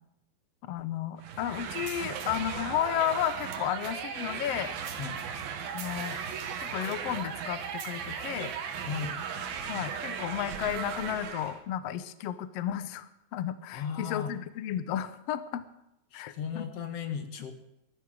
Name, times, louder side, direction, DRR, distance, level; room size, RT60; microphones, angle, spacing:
voice 1, 0.7-4.7 5.7-6.2 6.6-8.5 9.7-15.6 16.1-16.7, left 10 dB, 80° left, 12 dB, 1.4 m, -33 dB
sound 1, 1.2-11.6, right 7 dB, 80° right, 3.4 m, -37 dB
voice 2, 8.8-9.2 13.7-14.3 16.1-17.5, left 7 dB, 55° left, 7 dB, 2.0 m, -36 dB
20.5 x 13.0 x 4.9 m, 0.85 s
omnidirectional pair, 4.2 m